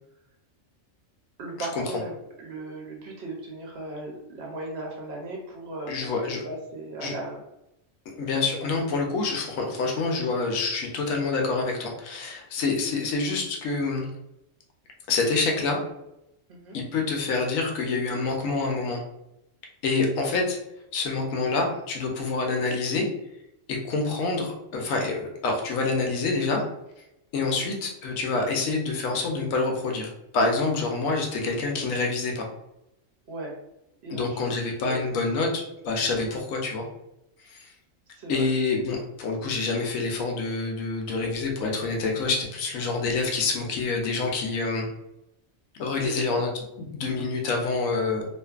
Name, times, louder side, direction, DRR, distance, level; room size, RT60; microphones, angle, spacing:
voice 1, 1.4-6.1 6.4-7.4 16.5-16.8 27.4-27.7 33.3-33.5 34.0-34.5 34.8-35.2 38.2-38.5 46.0-46.4, right 2 dB, 60° right, -1 dB, 0.8 m, -37 dB
voice 2, 5.9-6.4 7.0-7.1 8.2-14.1 15.1-15.8 16.7-19.0 19.8-20.6 20.9-23.0 23.7-26.6 27.3-32.4 34.1-36.8 37.5-37.7 38.3-44.9 45.8-46.5 46.8-48.2, left 3 dB, 85° left, 1 dB, 1.0 m, -27 dB
2.5 x 2.5 x 2.3 m, 0.86 s
omnidirectional pair, 1.4 m